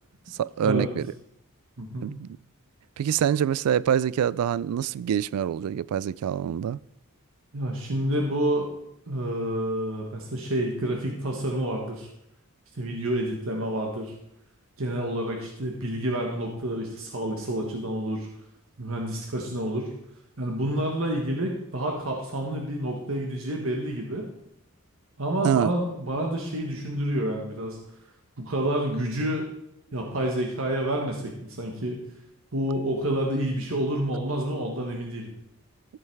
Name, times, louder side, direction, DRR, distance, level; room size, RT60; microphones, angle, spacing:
voice 1, 0.3-1.1 2.0-2.3 3.0-6.8 25.4-25.7, right 9 dB, 90° right, 0.3 m, -25 dB
voice 2, 1.8-2.1 7.5-8.7 9.1-12.1 12.7-14.1 14.8-18.3 18.8-19.9 20.4-24.3 25.2-27.8 28.4-29.5 29.9-32.0 32.5-35.3, right 1 dB, 70° right, 1.3 m, -28 dB
14.0 x 5.6 x 4.6 m
head